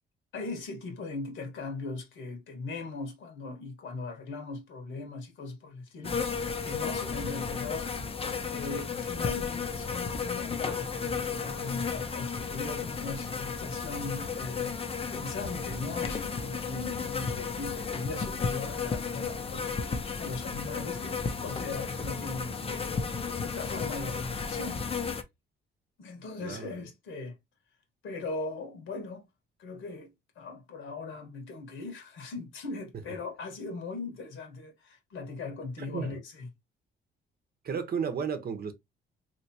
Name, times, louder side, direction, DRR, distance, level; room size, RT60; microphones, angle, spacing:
voice 1, 0.3-6.2 6.6-7.9 8.5-14.8 15.1-19.7 20.2-22.9 23.4-24.9 26.0-27.3 28.0-29.3 29.6-36.5, left 3 dB, 75° left, 1.4 m, -39 dB
sound 1, 6.0-25.2, left 5 dB, 30° left, 0.6 m, -33 dB
voice 2, 26.4-26.7 35.8-36.1 37.6-38.7, right 6 dB, 50° right, 0.8 m, -33 dB
3.2 x 3.0 x 2.8 m
cardioid pair, 90°, 20 cm